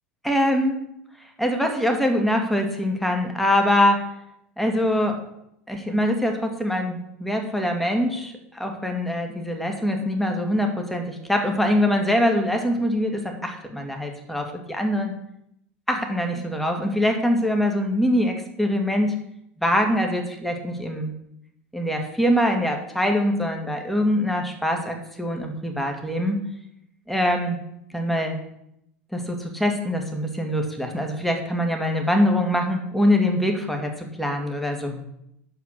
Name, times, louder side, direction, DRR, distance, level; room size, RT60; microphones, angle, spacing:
voice 1, 0.3-0.8 1.4-4.1 4.6-5.2 5.7-15.1 15.9-19.1 19.6-21.1 21.7-26.4 27.1-27.6 27.9-28.4 29.1-35.0, left 1 dB, ahead, 3 dB, 1.9 m, -23 dB
9.2 x 7.0 x 6.4 m, 0.78 s
figure-of-eight pair, 80°, 7 cm